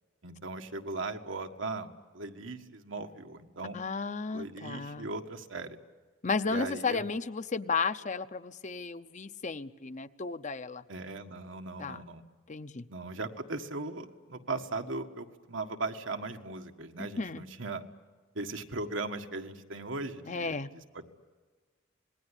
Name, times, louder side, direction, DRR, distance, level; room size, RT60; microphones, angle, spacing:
voice 1, 0.2-3.8 4.3-5.8 6.4-7.0 10.9-12.2 12.9-17.8 18.4-20.6, right 3 dB, 85° right, 5 dB, 1.7 m, -38 dB
voice 2, 3.7-5.1 6.2-10.8 11.8-12.0 12.5-12.8 17.0-17.4 20.3-20.7, left 4 dB, 40° left, 12 dB, 0.7 m, -33 dB
26.5 x 20.5 x 10.0 m, 1.4 s
head